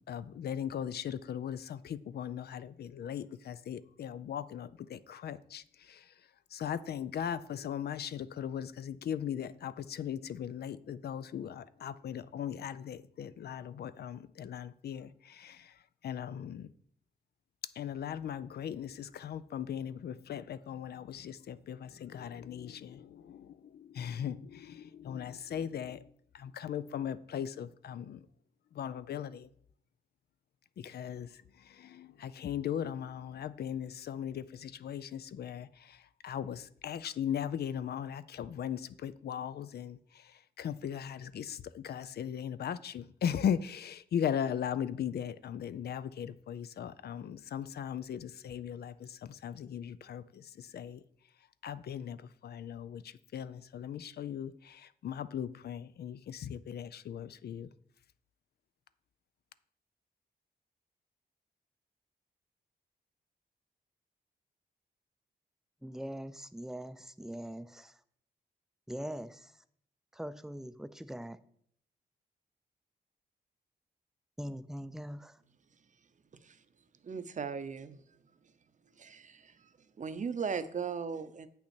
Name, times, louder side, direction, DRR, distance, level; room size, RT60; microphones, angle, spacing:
voice 1, 0.1-6.0 6.5-15.7 16.0-16.7 17.8-26.0 26.3-28.2 28.7-29.5 30.8-31.3 31.7-36.0 36.2-40.0 40.6-51.0 51.6-57.7, left 9 dB, 70° left, 0.4 m, -38 dB
voice 2, 65.8-67.9 68.9-69.5 70.1-71.4 74.4-75.3, equal, 5° right, 0.4 m, -42 dB
voice 3, 77.0-78.0 79.0-79.7 80.0-81.5, right 6 dB, 45° right, 0.7 m, -38 dB
7.9 x 5.7 x 4.3 m
cardioid pair, 80°, 17 cm